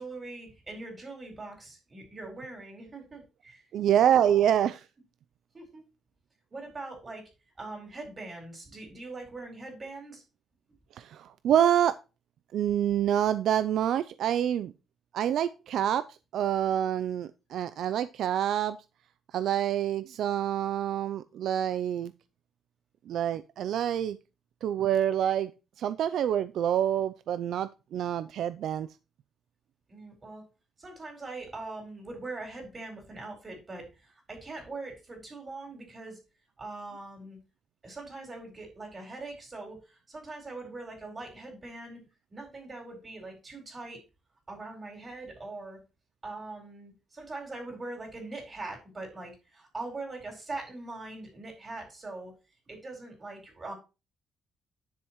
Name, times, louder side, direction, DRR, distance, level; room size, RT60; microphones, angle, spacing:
voice 1, 0.0-3.7 4.0-4.4 5.5-5.8 6.5-7.3 7.6-10.2 29.9-30.4 30.8-36.2 36.6-37.4 37.8-42.0 42.3-44.0 44.5-45.8 46.2-52.3 52.7-53.7, right 2 dB, 30° right, 1 dB, 4.3 m, -42 dB
voice 2, 3.7-4.8 10.9-12.0 12.5-14.7 15.1-18.8 19.3-22.1 23.1-24.2 24.6-25.5 25.8-28.9, right 10 dB, 75° right, 14 dB, 0.4 m, -27 dB
10.5 x 6.3 x 3.0 m, 0.29 s
cardioid pair, 90°, 0 cm